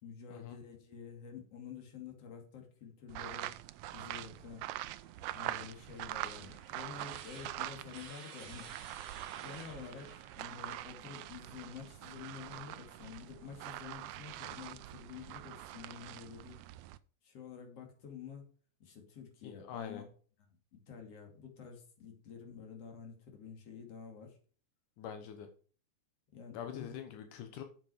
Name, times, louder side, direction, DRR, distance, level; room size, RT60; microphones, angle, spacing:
voice 1, 0.0-3.6 3.9-4.7 5.3-8.8 9.4-16.6 17.2-18.4 18.8-20.1 20.4-24.4 26.3-27.1, left 7 dB, 50° left, 2 dB, 3.4 m, -49 dB
sound 1, 3.1-8.1 8.4-17.0, right 15 dB, 85° right, 1.4 m, -44 dB
sound 2, 4.9-11.4, right 7 dB, 55° right, 2.1 m, -53 dB
voice 2, 19.4-20.0 25.0-25.5 26.5-27.6, left 8 dB, 85° left, 7 dB, 2.6 m, -44 dB
8.7 x 7.5 x 4.9 m, 0.41 s
omnidirectional pair, 3.6 m